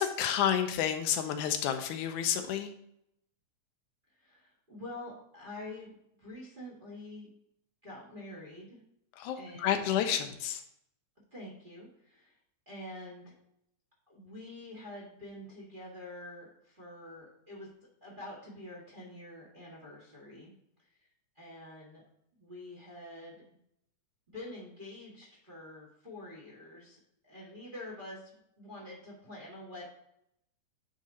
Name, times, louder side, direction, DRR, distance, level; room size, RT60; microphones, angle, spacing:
voice 1, 0.0-2.7 9.2-10.6, left 9 dB, 85° left, 7 dB, 2.1 m, -30 dB
voice 2, 4.2-5.9 6.2-7.3 7.8-8.8 9.3-10.0 11.3-12.3 12.6-13.2 14.1-17.7 18.0-20.5 21.3-22.0 22.4-23.4 24.3-27.0 27.2-29.8, left 1 dB, 25° right, -5 dB, 1.3 m, -46 dB
9.2 x 3.7 x 4.2 m, 0.76 s
omnidirectional pair, 3.5 m